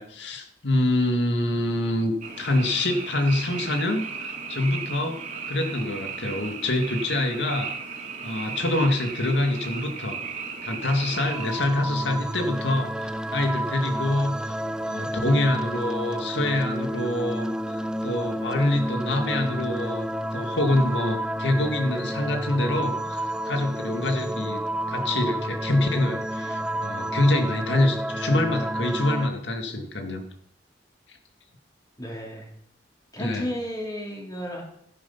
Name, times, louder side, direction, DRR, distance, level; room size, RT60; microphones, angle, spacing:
voice 1, 0.0-5.2 5.5-7.7 8.2-24.6 24.9-30.2 33.2-33.4, left 1 dB, 80° left, 5 dB, 2.1 m, -26 dB
Frog, 2.2-11.6, right 5 dB, 45° right, 2.5 m, -35 dB
sound 1, 11.1-29.3, equal, 5° right, 0.5 m, -30 dB
voice 2, 32.0-32.5 33.1-34.6, equal, 20° left, -2 dB, 3.6 m, -33 dB
13.5 x 10.0 x 5.6 m, 0.69 s
head